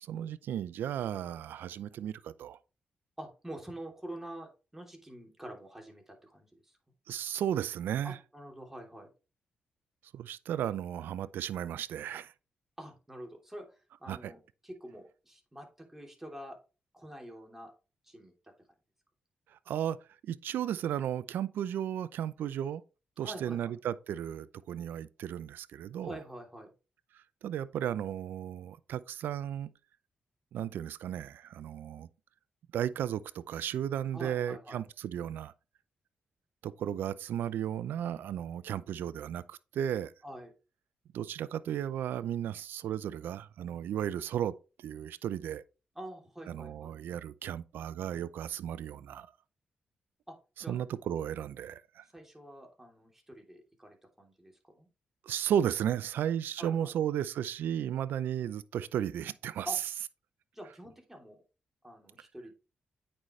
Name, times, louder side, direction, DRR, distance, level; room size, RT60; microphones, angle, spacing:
voice 1, 0.0-2.6 7.1-8.2 10.1-12.3 14.1-14.3 19.7-20.0 20.2-22.8 23.2-26.2 27.4-29.7 30.5-32.1 32.7-35.5 36.6-40.1 41.1-44.5 44.8-45.6 46.5-49.3 50.7-52.0 55.2-59.7, right 10 dB, 80° right, 0.5 m, -34 dB
voice 2, 3.2-6.7 8.0-9.1 12.8-16.6 16.9-17.7 18.0-18.3 23.2-23.7 26.0-26.7 34.1-34.8 40.2-40.5 45.9-46.9 50.3-50.8 52.1-54.9 56.6-56.9 59.6-59.8 60.5-61.4 61.8-62.5, right 1 dB, 10° right, 3.1 m, -46 dB
8.8 x 5.5 x 3.2 m
cardioid pair, 60°, 3 cm